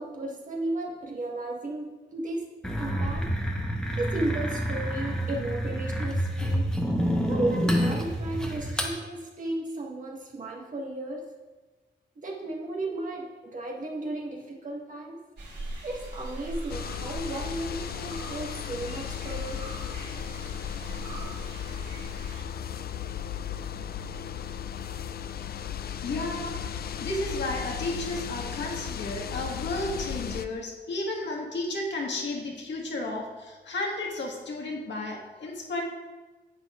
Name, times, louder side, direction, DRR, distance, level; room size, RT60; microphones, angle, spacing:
voice 1, 0.0-2.5 2.8-3.3 4.0-6.7 7.3-11.3 12.1-15.2 15.8-19.7, right 2 dB, 45° right, -1 dB, 1.5 m, -34 dB
sound 1, 2.6-8.9, equal, 5° left, 1.0 m, -28 dB
sound 2, 15.4-22.4, right 2 dB, 65° right, 2.9 m, -41 dB
sound 3, 16.7-30.5, left 9 dB, 55° left, 0.4 m, -35 dB
voice 2, 26.0-26.6 27.0-35.8, left 2 dB, 75° left, -1 dB, 1.6 m, -33 dB
9.7 x 8.5 x 2.4 m, 1.2 s
wide cardioid pair, 140°, 19 cm